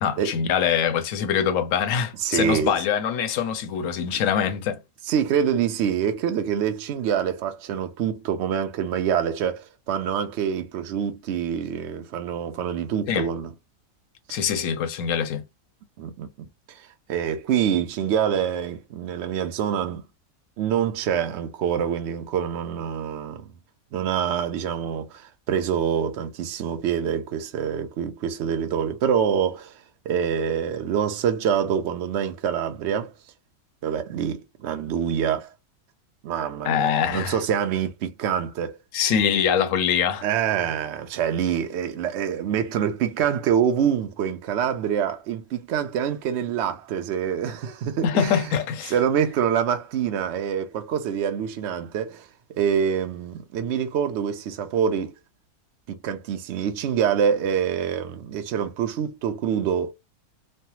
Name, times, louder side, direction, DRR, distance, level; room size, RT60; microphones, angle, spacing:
voice 1, 0.0-4.8 13.1-13.3 14.3-15.4 36.6-37.4 38.9-40.2 48.0-48.9, left 8 dB, 65° left, 0.9 m, -24 dB
voice 2, 2.2-2.8 5.0-13.5 14.3-14.4 16.0-16.3 16.7-16.8 17.1-20.0 20.6-23.5 23.9-29.7 30.1-33.1 33.8-35.5 36.2-38.8 40.2-48.5 48.9-52.3 52.6-55.1 55.9-59.9, right 8 dB, 65° right, 0.7 m, -25 dB
3.2 x 2.0 x 2.8 m
omnidirectional pair, 1.7 m